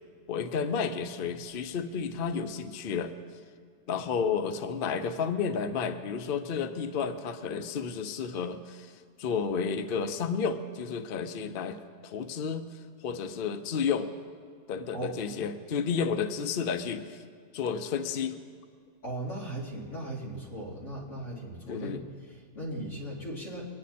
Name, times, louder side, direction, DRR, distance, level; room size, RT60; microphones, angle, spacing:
voice 1, 0.3-3.2 3.9-8.9 9.2-12.7 13.0-14.1 14.7-17.2 17.5-18.4 21.7-22.0, left 6 dB, 80° left, 9 dB, 0.5 m, -31 dB
voice 2, 19.0-23.6, right 1 dB, 40° left, -5 dB, 3.3 m, -38 dB
23.0 x 9.7 x 4.2 m, 2.1 s
omnidirectional pair, 1.9 m